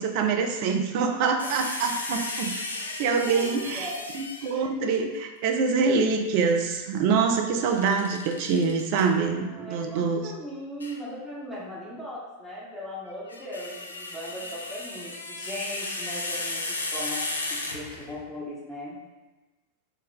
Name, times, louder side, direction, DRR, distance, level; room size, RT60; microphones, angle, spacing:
voice 1, 0.0-2.6 3.0-10.2, right 5 dB, 45° right, 4 dB, 0.3 m, -25 dB
sound 1, 1.4-4.7 7.6-9.0 10.8-11.0 13.1-18.2, left 2 dB, 75° left, 0.3 m, -35 dB
voice 2, 3.3-4.0 4.8-4.9 9.3-19.0, equal, 5° right, -8 dB, 0.8 m, -38 dB
2.7 x 2.1 x 3.7 m, 1.2 s
figure-of-eight pair, 90°, 0 cm